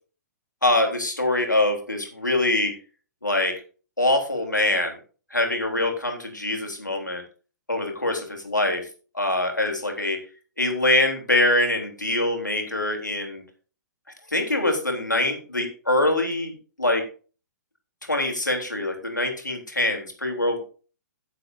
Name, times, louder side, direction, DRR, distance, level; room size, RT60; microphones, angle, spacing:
voice 1, 0.6-2.7 3.2-3.5 4.0-5.0 5.3-7.2 7.7-8.8 9.1-10.2 10.6-13.4 14.3-16.5 16.8-17.0 18.1-20.6, left 1 dB, 90° left, 3 dB, 3.4 m, -24 dB
15.5 x 7.6 x 2.7 m, 0.37 s
figure-of-eight pair, 115°, 10 cm